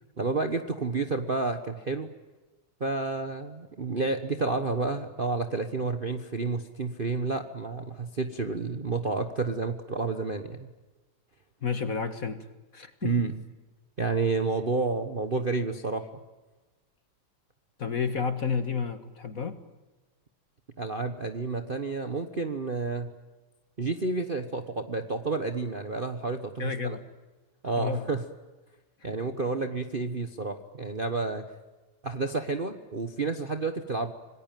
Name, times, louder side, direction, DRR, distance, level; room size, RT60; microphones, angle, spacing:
voice 1, 0.2-2.1 2.8-10.7 13.0-13.4 14.0-16.1 20.8-23.1 23.8-27.0 27.6-28.2 29.0-31.4 32.0-34.1, right 3 dB, 35° right, 7 dB, 1.0 m, -30 dB
voice 2, 11.6-12.5 12.7-13.2 17.8-19.6 26.6-27.1 27.8-28.1, left 6 dB, 40° left, 10 dB, 1.8 m, -31 dB
26.5 x 20.0 x 9.1 m, 1.2 s
omnidirectional pair, 2.4 m